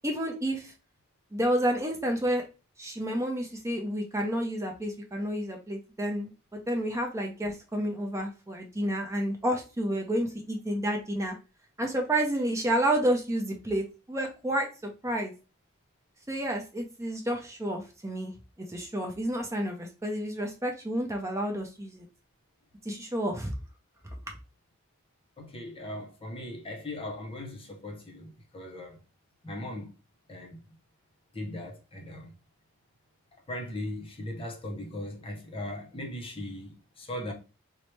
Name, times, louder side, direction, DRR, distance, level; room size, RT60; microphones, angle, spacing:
voice 1, 0.0-0.7 1.3-2.4 2.8-11.3 11.8-14.7 15.0-15.3 16.3-18.3 18.7-22.1 22.8-23.5, right 1 dB, 15° right, 0.6 m, -30 dB
voice 2, 25.4-29.0 29.4-29.9 30.3-30.6 31.3-32.3 33.5-37.3, left 1 dB, 25° left, 0.7 m, -38 dB
4.6 x 2.1 x 3.1 m
head